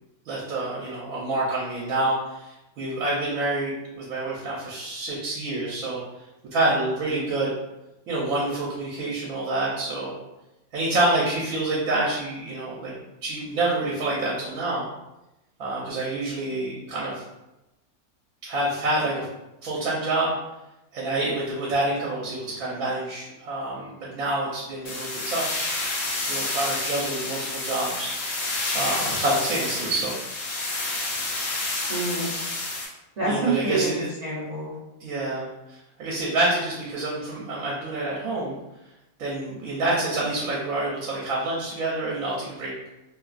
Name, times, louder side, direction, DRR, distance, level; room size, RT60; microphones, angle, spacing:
voice 1, 0.2-6.0 6.5-7.5 8.1-10.2 10.7-12.9 13.2-14.9 15.6-17.2 18.4-19.3 19.6-20.3 20.9-25.5 26.3-28.1 28.7-30.1 33.2-33.9 35.0-38.6 39.2-42.7, right 2 dB, 75° right, -6 dB, 1.1 m, -27 dB
sound 1, 24.9-32.9, left 2 dB, 70° left, 1.0 m, -29 dB
voice 2, 31.9-32.4 33.2-34.7, right 3 dB, 55° right, -7 dB, 0.4 m, -27 dB
2.9 x 2.3 x 2.4 m, 0.95 s
omnidirectional pair, 1.5 m